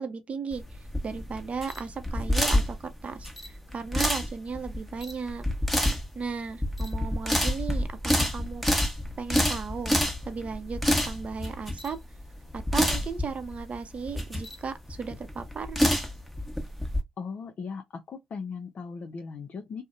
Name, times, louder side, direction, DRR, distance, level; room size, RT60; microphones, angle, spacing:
voice 1, 0.0-5.4 6.1-8.6 9.2-10.0 10.3-12.0 12.5-15.8, right 5 dB, 45° right, 0.6 m, -36 dB
sound 1, 0.5-17.0, left 1 dB, ahead, 0.8 m, -28 dB
voice 2, 17.2-19.8, left 5 dB, 55° left, 0.4 m, -38 dB
2.6 x 2.0 x 2.4 m
hypercardioid pair, 50°, 3 cm